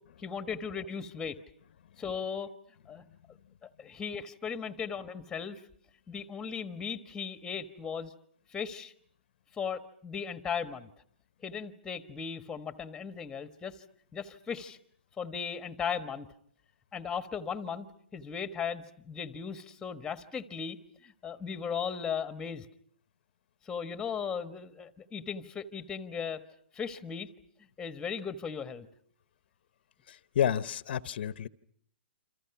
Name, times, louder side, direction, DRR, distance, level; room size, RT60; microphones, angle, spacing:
voice 1, 0.2-1.4 2.0-2.5 2.9-3.0 3.6-5.6 6.1-8.1 8.5-8.9 9.5-10.9 11.4-13.8 14.1-14.8 15.2-16.3 16.9-17.9 18.1-22.7 23.6-26.4 26.7-27.3 27.8-28.9, left 6 dB, 10° left, 1.3 m, -37 dB
voice 2, 30.1-31.5, left 9 dB, 60° left, 1.0 m, -30 dB
29.0 x 27.0 x 5.9 m
hypercardioid pair, 150°, 6 cm